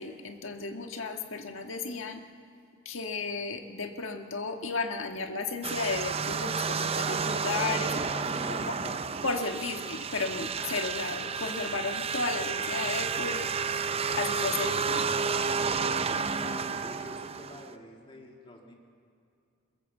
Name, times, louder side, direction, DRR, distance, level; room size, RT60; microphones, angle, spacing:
voice 1, 0.0-2.2 2.8-8.0 8.5-8.6 9.2-13.5 14.2-15.1, left 3 dB, 75° left, 5 dB, 1.5 m, -34 dB
sound 1, 5.6-17.7, right 5 dB, 30° right, 0.6 m, -31 dB
sound 2, 7.0-9.0 10.6-11.2 13.0-14.0, right 4 dB, 85° right, 2.3 m, -49 dB
voice 2, 7.9-9.1 16.0-18.8, left 1 dB, 25° left, 0 dB, 2.2 m, -46 dB
22.0 x 22.0 x 7.2 m, 2.4 s
head